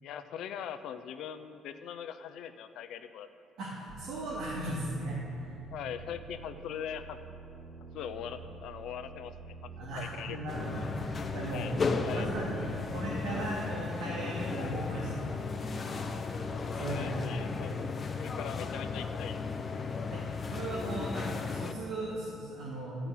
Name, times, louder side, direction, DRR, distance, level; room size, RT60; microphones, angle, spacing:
voice 1, 0.0-3.3 5.7-7.2 7.9-9.7 10.0-10.6 11.5-11.8 12.0-12.3 16.7-17.9 18.2-19.4, left 8 dB, 75° left, 9 dB, 0.7 m, -41 dB
voice 2, 3.6-5.6 9.8-11.7 12.1-17.2 20.1-23.1, right 2 dB, 90° right, -5 dB, 2.4 m, -38 dB
sound 1, 3.9-12.8, right 4 dB, 35° right, 3.4 m, -48 dB
sound 2, 10.5-21.7, left 4 dB, 30° left, 0.9 m, -35 dB
13.0 x 6.0 x 9.1 m, 2.5 s
cardioid pair, 130°, 0 cm